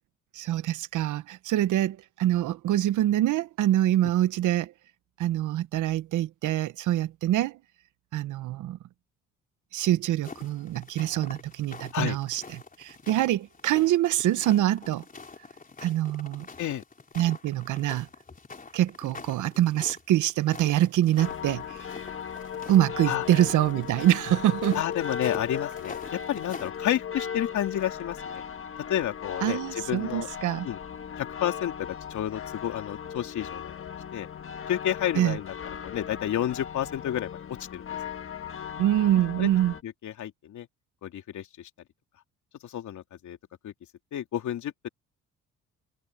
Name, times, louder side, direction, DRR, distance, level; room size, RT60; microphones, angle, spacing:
voice 1, 0.3-4.7 5.2-7.6 8.1-8.8 9.7-15.0 15.8-16.5 17.2-18.1 18.7-21.9 22.7-24.8 29.4-30.7 35.2-35.4 38.8-39.7, right 13 dB, 80° right, 1.1 m, -25 dB
sound 1, 10.2-26.7, left 4 dB, 25° left, 3.6 m, -45 dB
sound 2, 21.2-39.8, left 8 dB, 45° left, 1.5 m, -37 dB
voice 2, 24.7-28.4 28.8-30.3 30.6-30.8 31.2-33.8 34.1-34.3 34.7-35.5 35.8-37.8 39.4-39.5 39.8-40.7 41.0-41.7 42.6-43.4 43.6-43.7 44.1-44.9, left 11 dB, 70° left, 3.1 m, -31 dB
cardioid pair, 90°, 30 cm